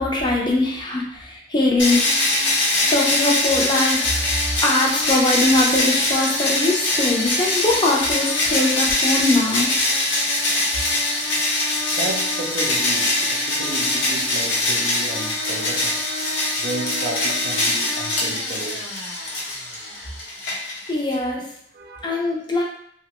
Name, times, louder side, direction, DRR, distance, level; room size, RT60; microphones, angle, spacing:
voice 1, 0.0-2.0 2.9-4.0 4.6-9.7 20.9-21.4 22.0-22.6, left 2 dB, 25° left, 0.5 m, -21 dB
sound 1, 1.8-21.1, left 2 dB, 75° left, 0.8 m, -22 dB
voice 2, 12.0-16.0 16.6-18.8 21.7-22.3, right 2 dB, 55° right, 0.4 m, -32 dB
2.8 x 2.1 x 2.9 m
head